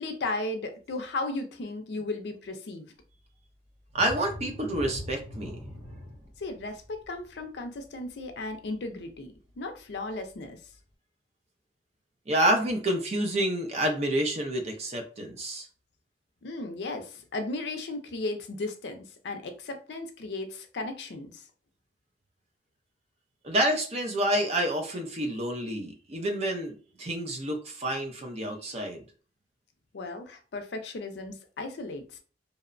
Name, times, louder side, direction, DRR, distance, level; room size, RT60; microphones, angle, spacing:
voice 1, 0.0-2.9 6.4-10.6 16.4-21.4 29.9-32.2, left 2 dB, 70° left, 0.5 m, -35 dB
voice 2, 3.9-5.6 12.3-15.7 23.4-29.0, right 1 dB, 35° right, 0.5 m, -28 dB
sound 1, 3.9-9.4 9.8-9.9 10.4-10.5, equal, 65° right, 0.9 m, -43 dB
2.8 x 2.0 x 2.5 m
head